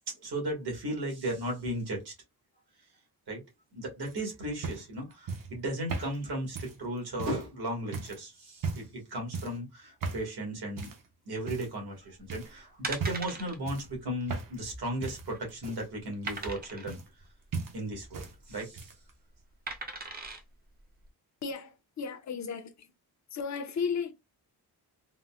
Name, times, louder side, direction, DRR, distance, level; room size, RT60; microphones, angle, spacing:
voice 1, 0.1-2.1 3.3-3.4 3.7-10.9 11.2-17.0 17.7-18.9, right 1 dB, 75° right, 1.6 m, -36 dB
sound 1, 4.0-7.5 7.9-8.2 8.6-9.0 9.3-9.6 10.0-10.3 10.8-11.1 11.5-12.0 12.3-12.5 12.9-13.4 13.7-14.7 15.0-17.3 17.5-18.3 18.6-19.1 20.0-20.1, right 4 dB, 55° right, 0.8 m, -38 dB
sound 2, 12.2-12.4 12.8-13.6 13.9-14.1 14.3-14.4 15.0-15.5 16.3-17.0 18.3-18.7 19.7-20.4 21.0-21.1, right 3 dB, 25° right, 0.5 m, -39 dB
voice 2, 21.4-22.9 23.3-24.1, left 6 dB, 45° left, 0.6 m, -34 dB
3.8 x 2.1 x 2.3 m
wide cardioid pair, 160°, 39 cm